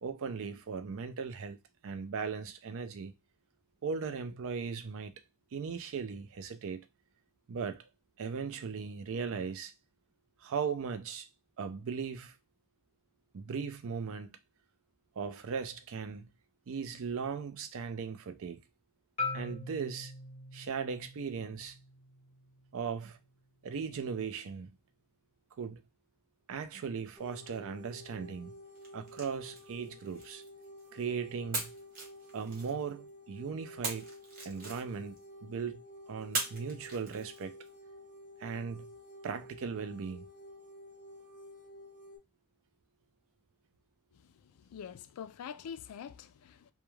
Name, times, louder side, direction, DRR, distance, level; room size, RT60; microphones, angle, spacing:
voice 1, 0.0-1.6 1.8-3.1 3.8-5.1 5.5-6.8 7.5-7.8 8.2-9.7 10.4-11.3 11.6-12.4 13.3-14.4 15.2-16.3 16.7-18.6 19.3-20.1 20.5-21.8 22.7-23.2 23.6-24.7 25.6-25.8 26.5-28.5 28.9-30.4 30.9-31.7 32.3-34.1 34.4-35.8 36.1-37.6 38.4-38.9 39.2-40.3, right 6 dB, 65° right, 0.4 m, -38 dB
Marimba xylophone, 19.2-23.3, left 3 dB, 30° left, 0.6 m, -42 dB
sound 1, 27.2-42.2, equal, 5° right, 0.9 m, -52 dB
sound 2, 28.8-31.0 31.5-33.1 33.8-35.2 36.3-37.7, right 3 dB, 45° right, 0.9 m, -41 dB
voice 2, 44.7-46.7, left 7 dB, 80° left, 0.3 m, -45 dB
2.3 x 2.2 x 3.0 m
head